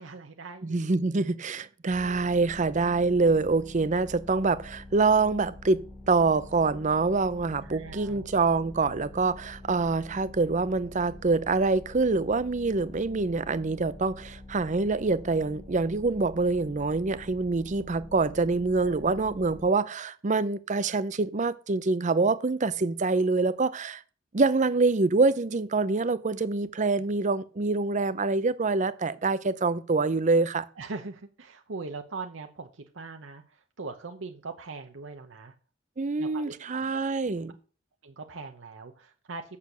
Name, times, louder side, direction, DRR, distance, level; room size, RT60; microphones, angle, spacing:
voice 1, 0.0-0.9 2.0-2.4 7.6-8.2 18.9-19.2 30.8-35.5 36.2-36.5 36.9-37.2 38.0-39.6, right 3 dB, 75° right, 0.8 m, -41 dB
voice 2, 0.6-24.0 24.3-30.6 36.0-37.6, right 3 dB, 40° right, 0.6 m, -25 dB
sound 1, 1.9-19.7, left 2 dB, ahead, 1.8 m, -46 dB
8.4 x 6.5 x 6.6 m
head